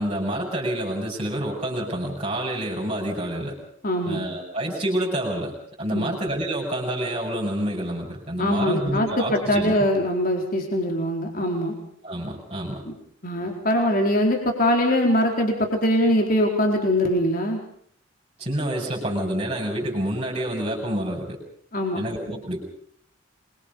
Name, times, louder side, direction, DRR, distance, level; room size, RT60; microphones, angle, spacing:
voice 1, 0.0-3.6 4.0-9.7 12.0-12.8 18.4-21.4 21.9-22.6, right 1 dB, 30° right, -3 dB, 6.4 m, -28 dB
voice 2, 3.8-4.2 5.9-6.1 8.4-11.8 12.8-12.9 13.2-17.6 21.7-22.0, left 1 dB, 40° left, 2 dB, 4.3 m, -22 dB
26.5 x 23.5 x 5.4 m, 0.63 s
head